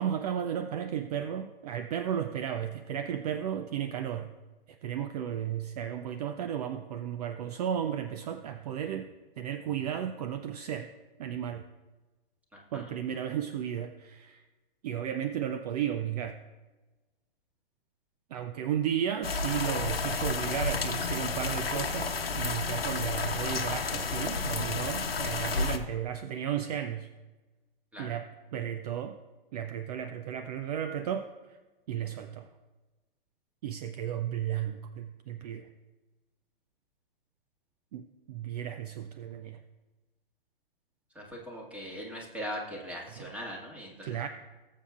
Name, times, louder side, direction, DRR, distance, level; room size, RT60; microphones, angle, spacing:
voice 1, 0.0-4.3 4.7-9.1 9.4-10.9 11.2-11.6 12.7-14.4 14.8-16.4 18.3-27.1 28.0-29.2 29.5-31.3 31.9-32.5 33.6-35.7 37.9-39.6 43.2-43.4 44.0-44.3, right 9 dB, 45° right, 8 dB, 0.6 m, -34 dB
voice 2, 12.5-12.9 27.9-28.2 41.2-44.3, equal, 5° right, -2 dB, 1.9 m, -40 dB
sound 1, 19.2-25.8, left 4 dB, 85° left, 1.0 m, -31 dB
19.0 x 7.4 x 2.4 m, 1.2 s
figure-of-eight pair, 120°, 29 cm